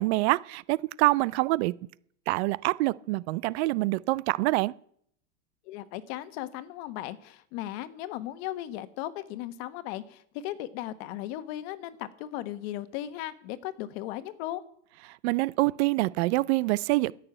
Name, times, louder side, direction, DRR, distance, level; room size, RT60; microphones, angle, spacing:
voice 1, 0.0-1.7 2.3-4.7 15.2-17.1, right 20 dB, 60° right, 0.5 m, -26 dB
voice 2, 5.6-14.6, left 13 dB, 55° left, 1.3 m, -37 dB
15.5 x 6.6 x 8.9 m
supercardioid pair, 135°, 38 cm